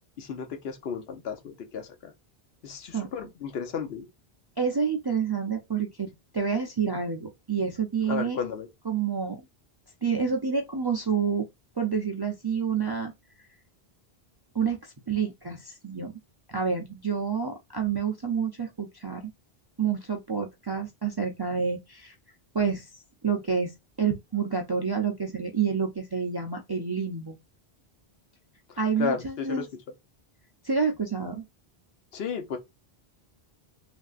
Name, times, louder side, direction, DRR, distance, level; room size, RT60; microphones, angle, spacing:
voice 1, 0.2-2.1 2.6-4.1 8.1-8.7 29.0-29.7 32.1-32.6, left 6 dB, 75° left, 1.0 m, -33 dB
voice 2, 4.6-8.4 8.8-9.5 10.0-11.4 11.8-13.1 14.5-16.1 16.5-19.2 19.8-22.1 22.5-22.9 23.2-23.7 24.0-27.4 28.8-29.7 30.6-31.4, right 6 dB, 35° right, 0.4 m, -28 dB
3.2 x 2.6 x 2.4 m
omnidirectional pair, 1.0 m